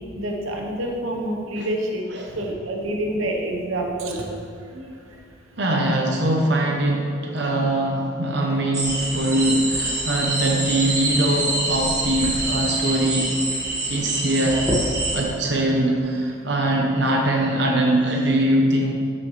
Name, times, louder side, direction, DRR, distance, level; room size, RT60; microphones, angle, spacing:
voice 1, 0.2-4.3 4.7-5.2, right 1 dB, 90° right, 0 dB, 1.3 m, -28 dB
voice 2, 5.6-13.3 13.9-14.7 15.1-18.9, right 1 dB, 55° right, 0 dB, 0.9 m, -22 dB
sound 1, 8.7-15.2, right 2 dB, 15° right, 1.7 m, -25 dB
13.0 x 6.9 x 3.4 m, 2.3 s
head